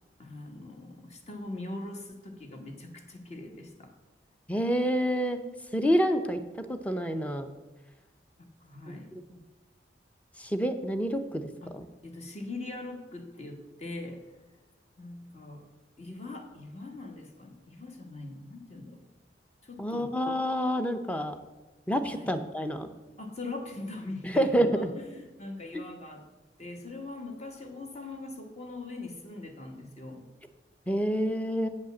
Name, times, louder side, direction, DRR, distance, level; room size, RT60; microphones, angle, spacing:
voice 1, 0.2-3.9 8.4-9.1 11.6-11.7 12.0-14.3 15.0-15.7 16.0-19.0 19.6-20.2 22.1-22.3 23.2-26.2 26.6-30.3, left 2 dB, 35° left, 4 dB, 1.2 m, -42 dB
voice 2, 4.5-5.4 5.7-6.4 6.7-7.5 8.9-9.4 10.4-11.9 19.8-21.3 21.9-22.9 24.2-24.9 25.7-25.8 30.9-31.7, equal, 10° left, 8 dB, 0.6 m, -28 dB
8.3 x 5.3 x 7.1 m, 1.2 s
head